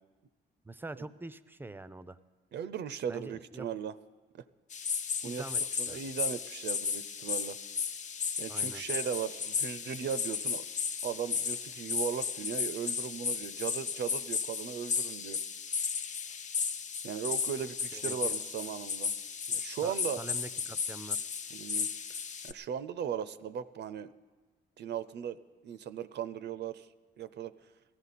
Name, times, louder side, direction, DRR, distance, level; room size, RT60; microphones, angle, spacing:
voice 1, 0.6-2.2 3.1-3.7 5.2-6.0 8.5-8.8 17.9-18.3 19.6-21.3, right 2 dB, 10° right, 15 dB, 0.5 m, -45 dB
voice 2, 2.5-3.9 4.3-4.4 5.2-5.4 5.8-7.6 8.4-10.6 11.0-15.4 17.0-19.1 19.5-20.2 21.5-21.9 22.4-24.1 24.8-26.9 27.2-27.5, right 8 dB, 60° right, 13 dB, 0.5 m, -37 dB
sound 1, 4.7-22.5, left 6 dB, 40° left, 0.5 m, -35 dB
17.0 x 13.0 x 4.2 m, 1.3 s
cardioid pair, 90°, 20 cm